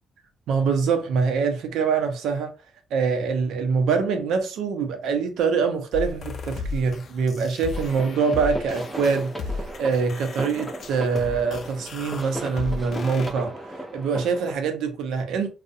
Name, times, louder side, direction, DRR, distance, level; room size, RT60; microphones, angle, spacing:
voice 1, 0.5-2.5 2.9-13.5 13.9-15.5, right 5 dB, 80° right, 0.5 m, -24 dB
sound 1, 5.9-13.3, left 3 dB, 55° left, 0.3 m, -35 dB
sound 2, 7.7-14.5, right 1 dB, 5° right, 0.6 m, -36 dB
2.4 x 2.1 x 2.6 m
cardioid pair, 90°, 0 cm